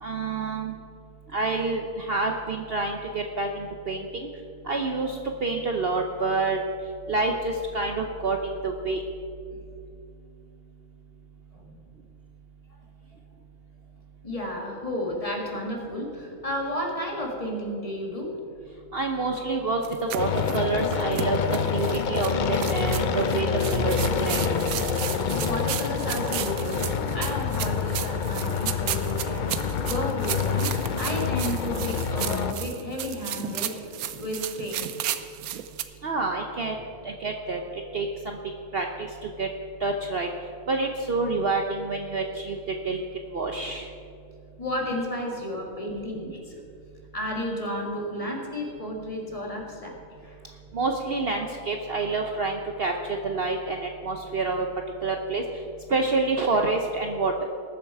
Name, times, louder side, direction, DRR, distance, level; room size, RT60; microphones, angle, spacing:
voice 1, 0.0-0.7 1.3-4.1 4.7-6.6 7.1-9.0 18.9-24.5 36.0-36.8 37.2-37.6 37.9-38.4 38.7-39.5 39.8-40.3 40.7-42.6 42.8-43.0 43.3-43.9 50.7-54.7 55.0-55.4 55.9-57.4, right 3 dB, 50° right, 3 dB, 0.9 m, -27 dB
voice 2, 14.2-18.3 25.4-29.5 29.9-33.8 34.2-34.9 44.6-46.6 47.1-50.4, equal, 25° left, 0 dB, 1.9 m, -32 dB
sound 1, 19.8-35.8, right 11 dB, 85° right, 1.1 m, -34 dB
sound 2, 20.2-32.5, left 6 dB, 70° left, 0.4 m, -27 dB
19.5 x 7.5 x 4.7 m, 2.5 s
omnidirectional pair, 1.5 m